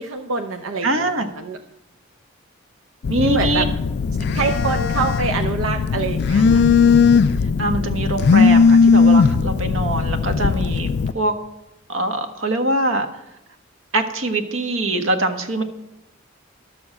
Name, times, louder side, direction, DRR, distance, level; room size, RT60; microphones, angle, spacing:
voice 1, 0.0-0.9 1.4-1.6 3.2-3.7 4.3-6.6, right 4 dB, 90° right, 5 dB, 0.8 m, -25 dB
voice 2, 0.8-1.3 3.1-3.6 4.2-4.5 7.6-11.3 11.9-13.1 13.9-15.6, right 1 dB, 70° right, 7 dB, 1.3 m, -23 dB
Telephone, 3.0-11.1, left 5 dB, 55° left, 0.4 m, -17 dB
12.0 x 7.1 x 7.4 m, 0.91 s
head